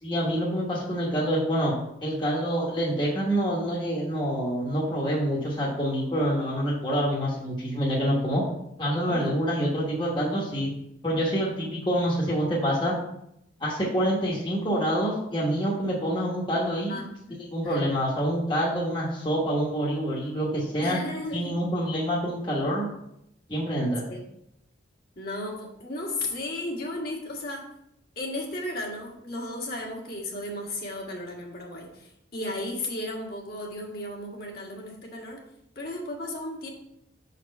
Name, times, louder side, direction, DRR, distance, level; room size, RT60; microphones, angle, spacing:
voice 1, 0.0-1.7 2.0-8.4 8.8-10.7 11.0-12.9 13.6-17.0 17.5-21.0 21.3-22.9 23.5-24.0, equal, 25° left, -4 dB, 1.1 m, -26 dB
voice 2, 16.9-18.0 20.8-21.6 24.1-24.2 25.1-27.6 28.1-35.4 35.7-36.7, left 1 dB, 50° left, -2 dB, 1.5 m, -35 dB
6.1 x 4.2 x 5.3 m, 0.79 s
head